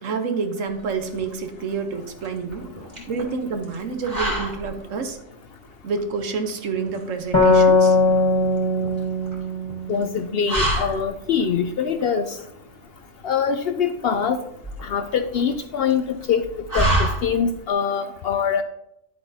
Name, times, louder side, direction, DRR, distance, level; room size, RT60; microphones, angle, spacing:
voice 1, 0.0-2.7 3.1-5.2 5.8-8.0, right 5 dB, 75° right, 7 dB, 1.3 m, -28 dB
sound 1, 0.7-17.7, right 1 dB, 35° right, 2.8 m, -30 dB
sound 2, 7.3-10.8, left 3 dB, 20° left, 1.4 m, -20 dB
voice 2, 9.9-12.4 13.2-14.4 14.8-16.4 16.7-18.6, left 7 dB, 65° left, 9 dB, 0.6 m, -23 dB
10.5 x 8.0 x 2.7 m, 0.80 s
omnidirectional pair, 1.3 m